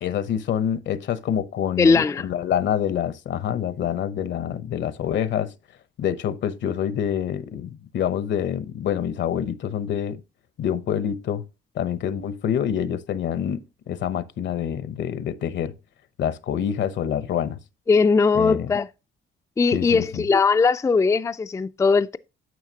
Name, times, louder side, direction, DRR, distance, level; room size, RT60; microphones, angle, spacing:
voice 1, 0.0-5.5 6.0-10.2 10.6-11.4 11.7-15.7 16.2-17.6 18.3-18.7 19.7-20.2, left 9 dB, 65° left, 0.8 m, -26 dB
voice 2, 1.8-2.3 17.9-18.9 19.6-22.2, left 4 dB, 15° left, 0.3 m, -19 dB
9.5 x 6.5 x 2.8 m
cardioid pair, 90°, 20 cm